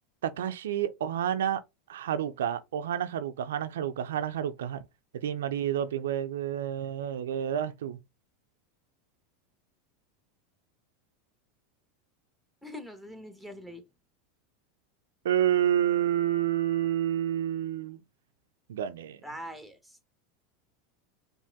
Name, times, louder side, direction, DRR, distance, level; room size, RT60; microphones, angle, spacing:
voice 1, 0.2-1.6 1.9-4.8 5.2-8.0 15.2-18.0 18.7-19.2, right 10 dB, 80° right, 0.4 m, -29 dB
voice 2, 12.6-13.8 19.2-20.0, equal, 5° left, 1.1 m, -43 dB
4.7 x 2.6 x 3.5 m
hypercardioid pair, 100°, 0 cm